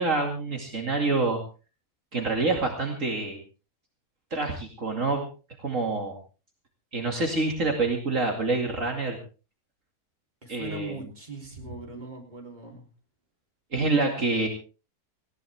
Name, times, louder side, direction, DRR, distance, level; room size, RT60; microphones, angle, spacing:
voice 1, 0.0-1.4 2.1-3.4 4.3-5.2 5.6-6.2 6.9-9.2 10.5-10.9 13.7-14.5, right 3 dB, 60° right, 2 dB, 2.7 m, -26 dB
voice 2, 10.4-12.9, right 3 dB, 30° right, 2 dB, 3.7 m, -40 dB
19.0 x 17.0 x 3.5 m, 0.35 s
omnidirectional pair, 1.5 m